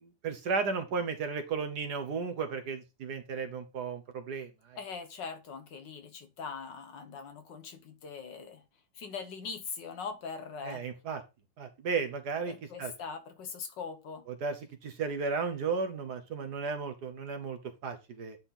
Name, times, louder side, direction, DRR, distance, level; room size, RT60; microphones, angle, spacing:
voice 1, 0.0-4.8 10.6-11.2 11.6-12.9 14.4-18.4, right 5 dB, 60° right, 1.5 m, -34 dB
voice 2, 4.8-8.6 9.0-10.8 12.5-14.2, left 5 dB, 70° left, 1.9 m, -41 dB
10.0 x 4.3 x 3.7 m
omnidirectional pair, 2.0 m